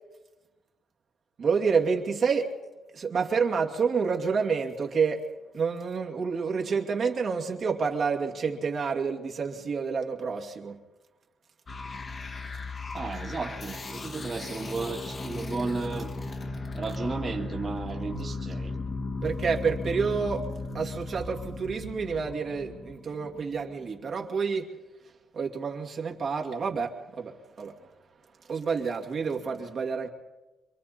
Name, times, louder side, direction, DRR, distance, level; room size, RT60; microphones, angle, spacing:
voice 1, 1.4-2.5 2.9-5.2 5.5-10.8 19.2-20.5 20.7-24.7 25.3-27.7 28.5-30.1, right 5 dB, 55° right, 2.5 m, -28 dB
sound 1, 11.7-24.0, left 3 dB, 40° left, 1.9 m, -36 dB
voice 2, 12.9-16.2 16.7-18.7, right 4 dB, 35° right, 2.2 m, -34 dB
27.0 x 23.0 x 4.3 m
cardioid pair, 90°, 0 cm